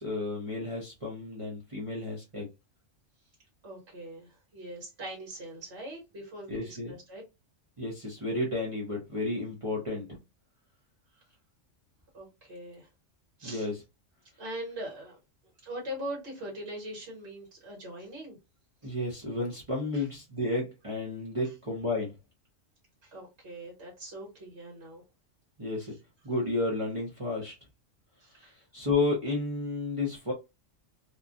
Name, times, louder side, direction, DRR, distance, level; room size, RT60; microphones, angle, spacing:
voice 1, 0.0-2.5 6.5-6.9 7.8-10.0 13.4-13.7 18.8-22.1 25.6-25.9 26.2-27.5 28.7-30.3, left 2 dB, 30° right, 0.9 m, -32 dB
voice 2, 3.6-7.2 12.1-12.9 13.4-13.7 14.4-15.2 15.6-18.4 19.9-20.0 23.0-25.0 28.2-28.5, right 1 dB, 60° right, 1.6 m, -41 dB
3.0 x 2.4 x 2.5 m
omnidirectional pair, 1.3 m